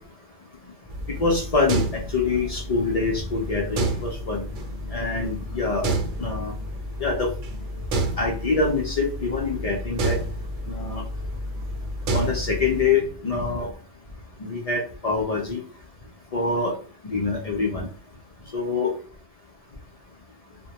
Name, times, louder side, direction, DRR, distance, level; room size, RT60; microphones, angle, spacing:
sound 1, 0.9-12.9, right 1 dB, 80° right, 0.9 m, -30 dB
voice 1, 1.2-4.4 4.9-5.9 6.2-6.5 7.0-7.3 8.2-10.2 10.7-11.0 12.1-13.7 14.4-15.6 16.3-16.7 17.0-17.9 18.5-18.9, left 4 dB, 75° left, -2 dB, 0.3 m, -25 dB
2.1 x 2.1 x 2.8 m, 0.41 s
omnidirectional pair, 1.3 m